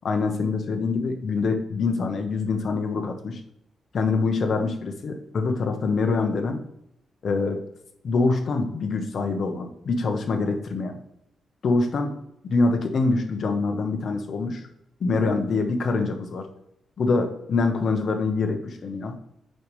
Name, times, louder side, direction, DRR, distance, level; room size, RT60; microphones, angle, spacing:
voice 1, 0.0-3.4 3.9-6.6 7.2-7.6 8.0-10.9 11.6-12.1 12.4-14.6 15.0-16.5 17.0-19.1, left 3 dB, 50° left, 5 dB, 1.0 m, -25 dB
7.8 x 5.3 x 3.3 m, 0.77 s
wide cardioid pair, 140°, 0 cm